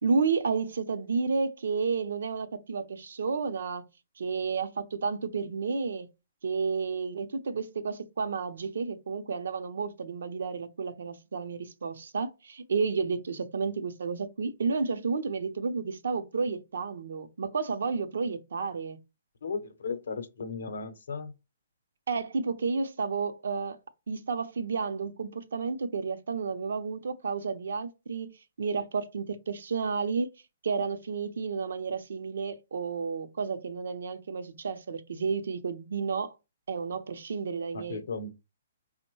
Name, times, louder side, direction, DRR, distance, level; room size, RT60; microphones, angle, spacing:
voice 1, 0.0-3.8 4.2-6.1 6.4-19.0 22.1-23.8 24.1-28.3 28.6-30.3 30.6-36.3 36.7-38.0, right 5 dB, 75° right, 0.5 m, -31 dB
voice 2, 19.4-21.3 37.7-38.4, left 4 dB, 80° left, 0.6 m, -36 dB
5.2 x 2.1 x 3.0 m
hypercardioid pair, 165°, 0 cm